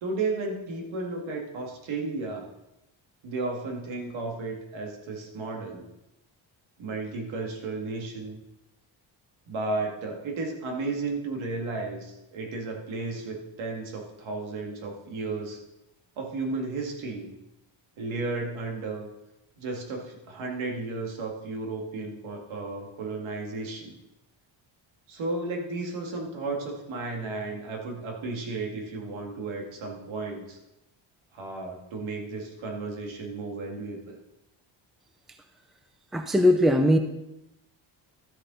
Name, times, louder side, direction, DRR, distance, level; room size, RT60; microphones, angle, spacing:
voice 1, 0.0-2.5 3.2-5.9 6.8-8.4 9.5-15.6 16.2-17.3 18.0-19.1 19.6-24.0 25.1-30.6 31.3-34.2, right 3 dB, 75° right, 1 dB, 2.3 m, -33 dB
voice 2, 36.1-37.0, left 1 dB, ahead, 7 dB, 0.6 m, -20 dB
13.0 x 8.1 x 4.1 m, 0.91 s
cardioid pair, 150°, 48 cm